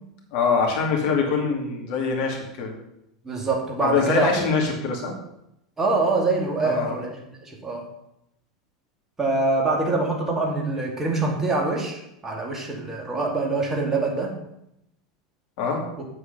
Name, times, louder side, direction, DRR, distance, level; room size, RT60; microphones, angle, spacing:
voice 1, 0.3-2.7 3.8-5.2 6.6-7.0 15.6-15.9, left 5 dB, 50° left, 0 dB, 2.5 m, -24 dB
voice 2, 3.2-4.3 5.8-7.9 9.2-14.4, right 3 dB, 15° right, 0 dB, 2.5 m, -25 dB
8.1 x 7.8 x 5.6 m, 0.81 s
figure-of-eight pair, 80°, 2 cm